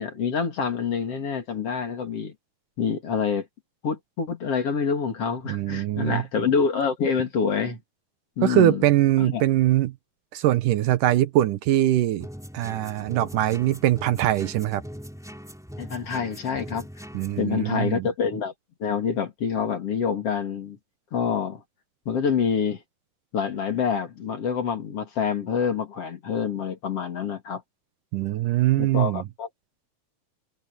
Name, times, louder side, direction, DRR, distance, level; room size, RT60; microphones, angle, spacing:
voice 1, 0.0-2.3 2.8-3.5 3.8-7.8 8.4-8.8 9.2-9.4 15.8-16.9 17.4-18.5 18.8-20.8 21.1-21.6 22.1-22.8 23.3-27.6 28.8-29.5, left 6 dB, 45° left, 3.3 m, -26 dB
voice 2, 5.5-6.2 8.4-9.9 10.3-12.3 12.5-14.8 17.1-18.1 28.1-29.2, right 14 dB, 75° right, 2.4 m, -22 dB
sound 1, 12.2-17.4, equal, ahead, 2.8 m, -41 dB
omnidirectional pair, 3.9 m